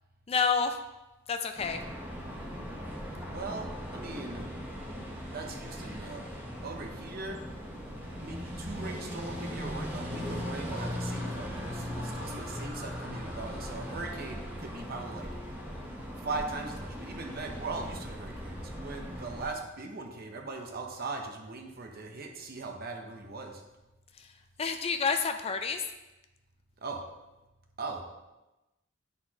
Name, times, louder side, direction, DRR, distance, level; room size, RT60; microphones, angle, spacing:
voice 1, 0.3-0.8 1.3-1.8 24.6-25.8, left 5 dB, 30° left, 7 dB, 0.4 m, -28 dB
sound 1, 1.6-19.5, equal, 10° right, 1.0 m, -39 dB
voice 2, 3.3-4.5 5.3-6.2 6.6-7.4 8.2-15.3 16.2-23.6 26.8-27.0 27.8-28.0, right 3 dB, 50° right, 3 dB, 0.8 m, -40 dB
9.4 x 4.2 x 2.9 m, 1.0 s
head